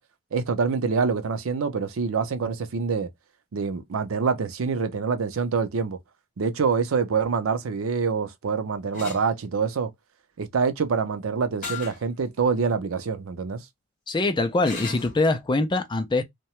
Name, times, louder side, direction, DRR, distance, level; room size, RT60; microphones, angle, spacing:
voice 1, 0.3-3.1 3.5-6.0 6.4-9.9 10.4-13.6, right 5 dB, 85° right, 0.5 m, -26 dB
sound 1, 8.9-9.2 11.6-12.0 12.6-12.7 14.6-15.2, left 4 dB, 40° left, 1.2 m, -35 dB
voice 2, 14.1-16.2, left 2 dB, 20° left, 0.4 m, -23 dB
2.8 x 2.2 x 2.9 m
head